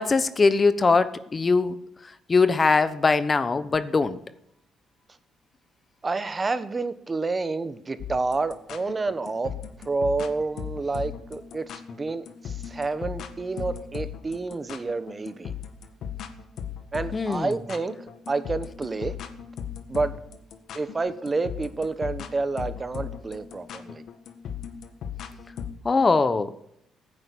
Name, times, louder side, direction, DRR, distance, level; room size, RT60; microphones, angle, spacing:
voice 1, 0.0-1.8 2.0-4.2 17.1-17.5 25.8-26.5, left 4 dB, 30° left, 1.0 m, -21 dB
voice 2, 6.0-9.5 9.8-15.5 16.9-17.9 18.3-19.1 19.9-20.1 20.7-24.0, right 3 dB, 30° right, 1.3 m, -29 dB
sound 1, 8.0-25.7, left 8 dB, 70° left, 1.8 m, -37 dB
16.0 x 10.0 x 8.6 m
cardioid pair, 90°, 0 cm